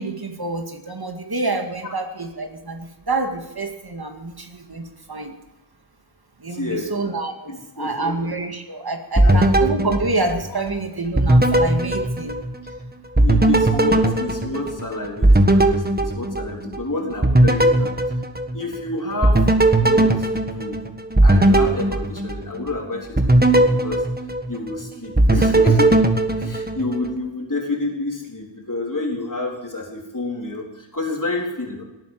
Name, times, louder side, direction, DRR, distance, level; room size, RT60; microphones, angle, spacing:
voice 1, 0.0-5.4 6.4-12.4, right 2 dB, 55° right, 5 dB, 2.1 m, -27 dB
voice 2, 6.5-6.9 7.5-8.3 9.2-9.4 12.6-12.7 13.2-17.9 18.5-19.5 19.8-20.8 21.2-24.1 24.5-26.0 26.4-31.8, left 2 dB, 45° left, 0 dB, 4.0 m, -29 dB
sound 1, 9.2-10.8 11.2-12.8 13.2-16.8 17.2-18.8 19.2-22.7 23.2-24.8 25.2-27.1, right 1 dB, 20° right, 1.5 m, -18 dB
18.0 x 9.1 x 7.6 m, 0.98 s
wide cardioid pair, 60°, 45 cm